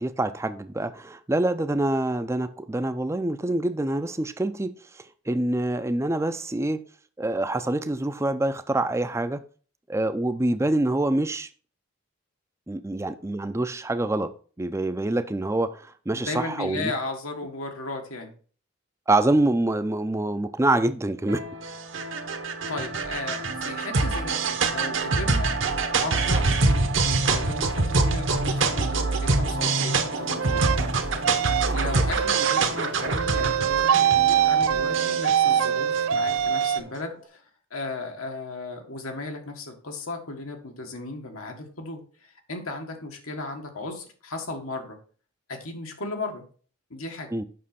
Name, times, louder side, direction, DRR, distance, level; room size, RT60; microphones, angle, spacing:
voice 1, 0.0-6.8 7.2-9.4 9.9-11.5 12.7-14.3 14.6-16.9 19.1-21.4 31.7-31.8 47.3-47.4, right 2 dB, 15° right, 0.4 m, -26 dB
voice 2, 16.1-18.3 22.7-25.6 26.0-31.2 31.7-37.4 37.7-45.0 45.5-46.4 46.9-47.3, left 2 dB, 90° left, 1.7 m, -36 dB
sound 1, 21.3-36.8, right 3 dB, 60° right, 1.0 m, -25 dB
sound 2, 30.4-30.8 31.2-31.8 32.1-32.6 33.2-36.8, right 9 dB, 80° right, 0.4 m, -23 dB
7.4 x 6.0 x 4.2 m
head